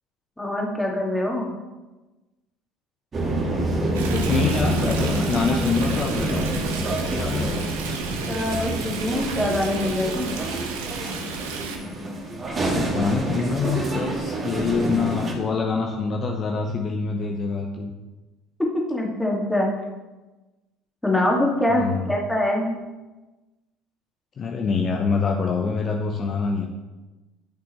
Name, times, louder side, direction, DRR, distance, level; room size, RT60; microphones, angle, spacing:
voice 1, 0.4-1.5 8.3-10.3 18.9-19.7 21.0-22.8, left 1 dB, 10° left, -1 dB, 2.1 m, -24 dB
sound 1, 3.1-15.3, right 2 dB, 35° right, 2.3 m, -27 dB
Stream, 3.9-11.8, right 5 dB, 75° right, 0.9 m, -33 dB
voice 2, 4.1-6.5 7.1-7.7 12.7-17.9 21.7-22.1 24.4-26.7, left 4 dB, 40° left, 2 dB, 0.8 m, -25 dB
10.5 x 6.1 x 3.1 m, 1.1 s
figure-of-eight pair, 60°, 0 cm